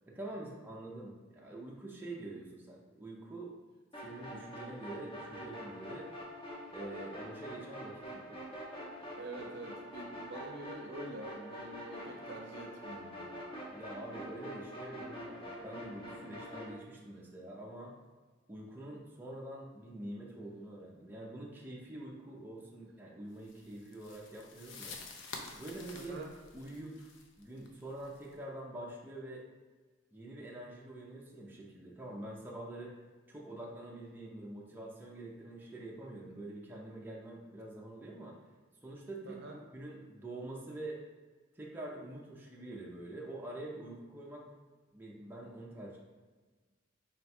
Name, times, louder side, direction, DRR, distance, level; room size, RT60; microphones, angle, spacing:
voice 1, 0.1-3.6 4.0-6.1 6.7-8.4 13.7-17.9 18.5-25.0 25.5-26.2 26.5-27.1 27.4-29.4 30.1-32.9 33.3-38.3 38.8-39.4 39.7-41.0 41.5-44.4 44.9-46.0, right 1 dB, 10° right, -4 dB, 0.5 m, -46 dB
sound 1, 3.9-16.7, equal, 25° left, 0.8 m, -45 dB
voice 2, 9.2-13.4 15.0-15.2 16.2-16.4 25.9-26.3 39.3-39.6, right 1 dB, 60° right, 2 dB, 0.6 m, -46 dB
sound 2, 23.4-28.3, left 4 dB, 65° left, 0.5 m, -49 dB
4.0 x 2.2 x 4.2 m, 1.3 s
head